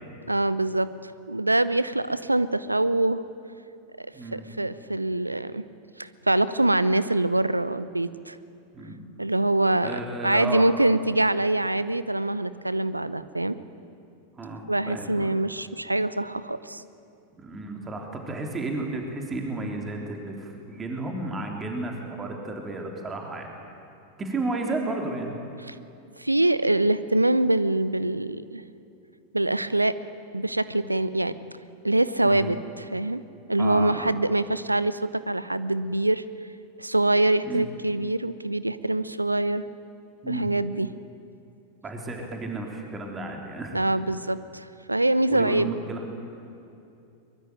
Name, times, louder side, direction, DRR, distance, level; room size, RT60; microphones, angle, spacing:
voice 1, 0.3-3.2 4.0-4.1 4.3-5.6 6.0-8.4 9.2-13.6 14.7-16.8 25.7-25.8 26.2-28.6 29.3-29.9 30.3-31.3 31.8-33.2 33.5-36.2 36.8-39.6 40.3-40.9 43.7-45.7, right 2 dB, 85° right, 16 dB, 0.7 m, -24 dB
voice 2, 4.1-4.4 8.7-9.0 9.8-10.7 14.3-15.3 17.4-23.5 24.2-25.4 32.2-32.5 33.6-34.1 37.4-37.6 40.2-40.5 41.8-43.9 45.3-46.1, right 2 dB, 20° right, 2 dB, 3.4 m, -33 dB
23.0 x 22.0 x 9.3 m, 2.7 s
figure-of-eight pair, 90°, 0 cm